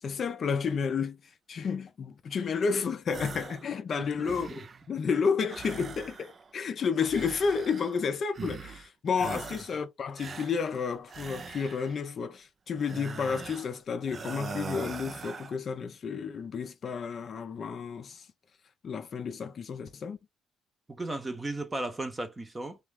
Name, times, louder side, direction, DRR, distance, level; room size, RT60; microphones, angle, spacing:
voice 1, 0.0-18.3 18.8-20.2, left 5 dB, 35° left, 0.5 m, -31 dB
sound 1, 3.1-3.7 4.0-4.9 5.5-6.5 7.0-8.0 8.3-8.9 9.1-9.8 10.2-12.0 12.8-13.7 14.1-15.6, right 5 dB, 30° right, 0.3 m, -41 dB
voice 2, 20.9-22.8, right 2 dB, 15° right, 0.8 m, -35 dB
3.4 x 3.0 x 3.6 m
cardioid pair, 165°, 0 cm